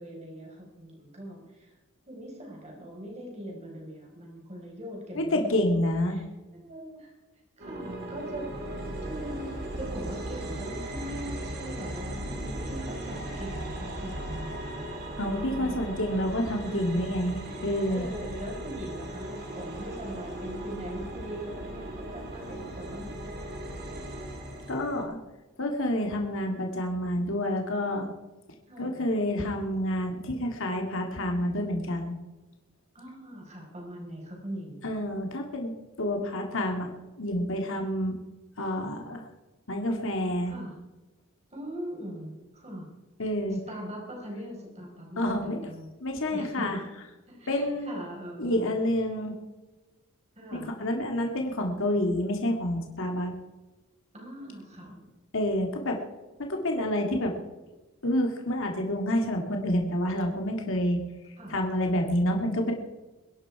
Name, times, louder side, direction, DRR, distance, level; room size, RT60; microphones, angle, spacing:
voice 1, 0.0-1.7 2.1-5.6 6.1-6.2 6.6-7.1 7.6-8.5 9.0-15.0 15.4-15.8 16.6-17.0 17.4-23.3 28.7-29.0 32.9-34.9 40.5-40.7 41.5-42.9 43.7-45.9 46.3-46.8 47.3-48.6 50.4-50.7 54.1-55.1 61.4-61.6, equal, 30° right, -1 dB, 5.0 m, -41 dB
voice 2, 5.1-6.2 15.2-18.1 24.7-25.2 25.6-28.1 28.8-32.2 34.8-36.9 37.2-38.1 38.6-39.2 39.7-40.5 43.2-43.6 45.2-45.7 46.0-46.8 47.5-48.0 48.4-49.3 50.5-53.3 55.3-56.0 56.4-57.3 58.0-61.0 61.5-62.7, left 1 dB, 60° left, 2 dB, 2.2 m, -28 dB
sound 1, 7.6-25.0, right 1 dB, 45° right, 3.1 m, -37 dB
23.0 x 10.5 x 4.8 m, 1.2 s
head